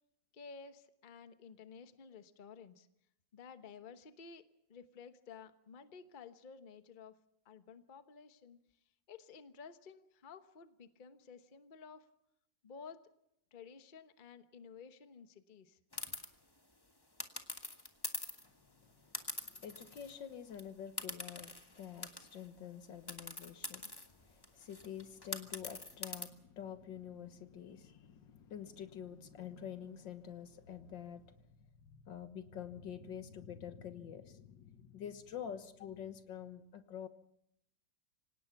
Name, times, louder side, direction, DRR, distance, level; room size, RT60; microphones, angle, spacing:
voice 1, 0.3-2.9 3.3-4.4 4.7-7.2 7.4-8.6 9.1-12.1 12.6-13.0 13.5-15.8, left 5 dB, 35° left, 9 dB, 1.0 m, -53 dB
sound 1, 15.9-16.3 17.2-18.5 19.1-20.2 20.5-20.6 21.0-22.5 23.1-26.3, left 2 dB, 15° left, 1.4 m, -44 dB
voice 2, 18.8-19.1 19.4-23.9 24.3-31.2 31.6-37.1, left 8 dB, 80° left, 9 dB, 2.0 m, -47 dB
26.0 x 18.0 x 5.9 m, 0.76 s
omnidirectional pair, 2.0 m